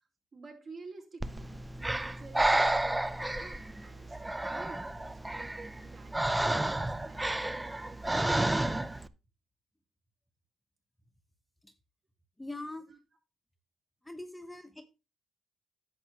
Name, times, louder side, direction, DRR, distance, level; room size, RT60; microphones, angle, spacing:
voice 1, 0.3-5.0 5.3-8.8 12.9-13.0, right 4 dB, 45° right, 0 dB, 4.5 m, -51 dB
Breathing, 1.2-9.1, right 1 dB, 10° right, 0.6 m, -31 dB
voice 2, 12.4-12.9 14.0-14.8, left 2 dB, 5° left, 6 dB, 1.2 m, -42 dB
10.5 x 7.7 x 3.0 m, 0.29 s
cardioid pair, 90°, 0 cm